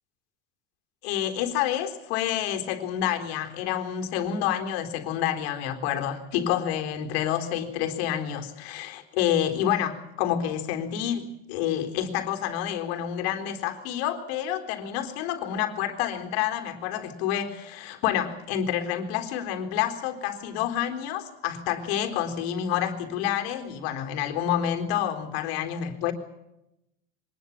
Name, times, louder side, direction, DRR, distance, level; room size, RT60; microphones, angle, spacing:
voice 1, 1.0-26.1, left 10 dB, 80° left, 6 dB, 3.9 m, -28 dB
24.5 x 20.5 x 7.3 m, 0.85 s
cardioid pair, 160°, 30 cm